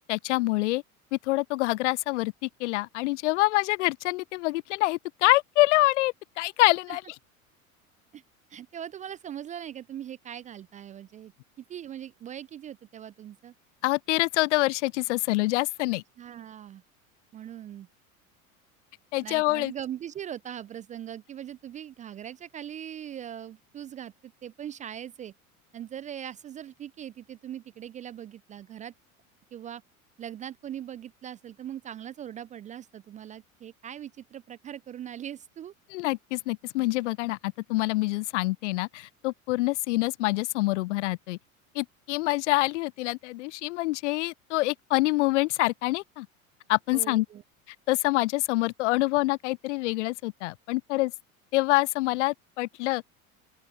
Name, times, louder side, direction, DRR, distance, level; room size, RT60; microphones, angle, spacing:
voice 1, 0.1-0.8 1.1-7.0 13.8-16.0 19.1-19.7 35.9-41.4 41.7-46.3 46.7-47.3 47.7-51.1 51.5-53.0, left 20 dB, 55° left, 0.5 m, -26 dB
voice 2, 8.5-11.3 11.6-13.5 16.2-16.8 17.3-17.9 19.2-25.3 25.7-28.9 29.5-29.8 30.2-35.7 46.9-47.4, right 10 dB, 20° right, 0.4 m, -40 dB
open air
figure-of-eight pair, 75°, 43 cm